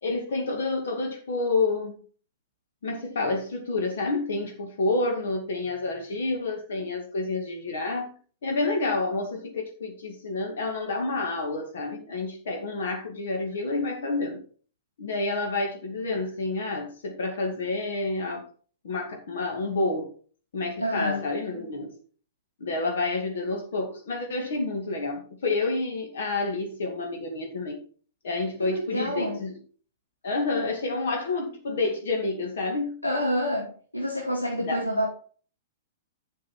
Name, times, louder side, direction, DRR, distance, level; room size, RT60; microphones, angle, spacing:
voice 1, 0.0-1.9 2.8-8.1 8.4-14.4 15.0-18.4 18.8-20.1 20.5-21.9 22.6-27.8 28.2-29.5 30.2-33.0 34.6-34.8, left 3 dB, 60° left, 2 dB, 2.3 m, -29 dB
voice 2, 20.8-21.2 28.6-29.4 33.0-35.1, equal, 85° left, -2 dB, 2.7 m, -28 dB
11.5 x 6.8 x 4.5 m, 0.42 s
figure-of-eight pair, 105°, 0 cm